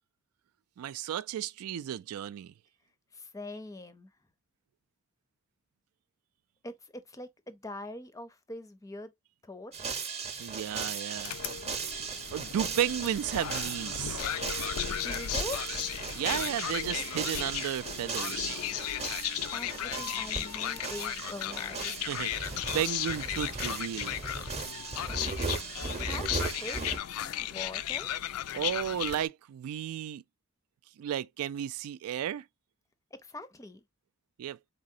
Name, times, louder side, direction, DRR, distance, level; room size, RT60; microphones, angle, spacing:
voice 1, 0.8-2.5 10.4-11.3 12.3-14.2 16.1-18.6 22.1-24.2 28.5-30.2 31.0-32.4 34.4-34.6, right 10 dB, 85° right, 0.3 m, -33 dB
voice 2, 3.1-4.1 6.6-9.1 9.4-10.0 14.9-15.6 19.5-21.9 26.0-28.1 33.2-33.8, left 2 dB, 15° left, 0.4 m, -43 dB
sound 1, 9.7-27.0, right 4 dB, 30° right, 0.7 m, -37 dB
sound 2, 11.2-29.3, left 11 dB, 85° left, 0.4 m, -35 dB
4.1 x 3.7 x 2.6 m
head